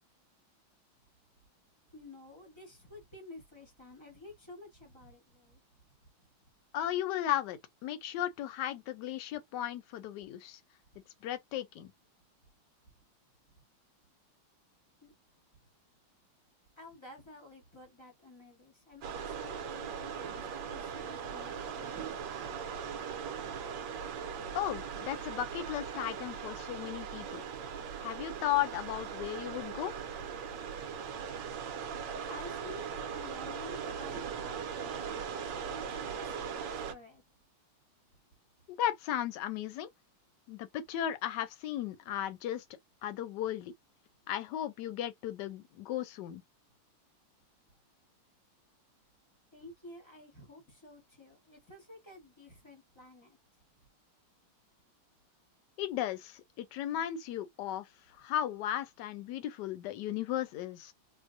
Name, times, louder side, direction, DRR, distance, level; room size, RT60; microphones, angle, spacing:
voice 1, 1.9-5.6 15.0-15.1 16.8-22.2 31.3-31.5 32.2-37.2 49.5-53.4, left 2 dB, 20° left, 0.7 m, -51 dB
voice 2, 6.7-10.6 11.2-11.9 24.5-27.4 28.0-29.9 38.7-39.9 40.5-42.6 43.0-43.7 44.3-46.4 55.8-60.9, left 11 dB, 70° left, 1.0 m, -35 dB
sound 1, 19.0-36.9, right 7 dB, 70° right, 1.1 m, -39 dB
4.4 x 2.1 x 2.5 m
omnidirectional pair, 2.4 m